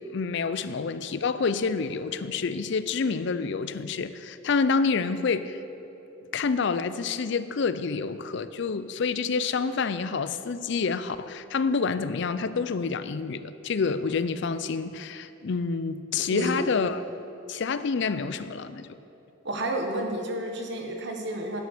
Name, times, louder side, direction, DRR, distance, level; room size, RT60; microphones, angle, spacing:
voice 1, 0.1-5.6 6.3-17.0 17.5-18.9, left 5 dB, 60° left, 13 dB, 0.5 m, -28 dB
voice 2, 16.3-16.7 19.4-21.6, right 1 dB, 60° right, 2 dB, 1.3 m, -30 dB
10.0 x 7.6 x 6.7 m, 3.0 s
head